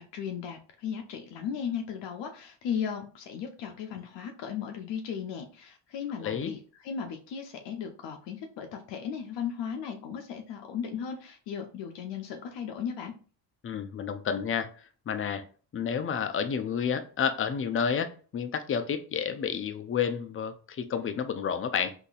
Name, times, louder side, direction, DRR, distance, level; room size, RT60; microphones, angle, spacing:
voice 1, 0.1-13.1, left 7 dB, 80° left, 3 dB, 0.6 m, -36 dB
voice 2, 6.2-6.5 13.6-14.7 15.1-15.4 15.7-21.9, left 7 dB, 30° left, 8 dB, 0.5 m, -30 dB
3.8 x 2.8 x 2.4 m, 0.39 s
cardioid pair, 80°, 42 cm